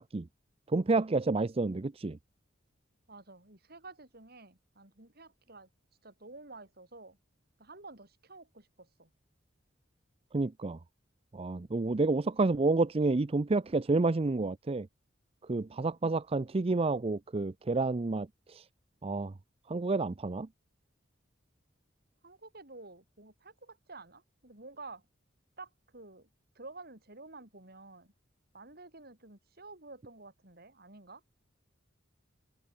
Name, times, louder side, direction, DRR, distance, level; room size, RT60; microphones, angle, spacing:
voice 1, 0.7-2.2 10.3-10.8 11.3-14.9 15.5-18.7 19.0-19.3 19.7-20.5, right 3 dB, 30° right, 0.5 m, -29 dB
voice 2, 3.1-5.7 6.0-7.2 7.6-9.1 22.2-25.0 25.6-26.3 26.6-28.1 28.5-31.2, right 3 dB, 55° right, 5.5 m, -51 dB
open air
head